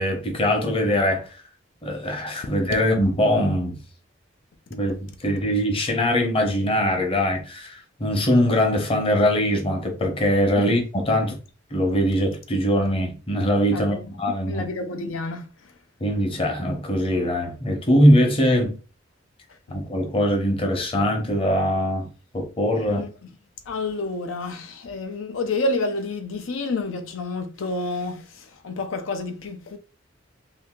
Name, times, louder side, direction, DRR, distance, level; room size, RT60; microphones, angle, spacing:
voice 1, 0.0-1.3 1.8-3.8 4.7-5.0 5.2-11.4 11.7-14.7 16.0-18.8 19.7-22.1 22.3-23.0, equal, 30° left, 0.8 m, -22 dB
voice 2, 13.7-14.1 14.5-15.7 19.5-19.6 22.8-23.3 23.7-29.8, left 2 dB, 80° left, 0.5 m, -29 dB
2.7 x 2.6 x 3.6 m
head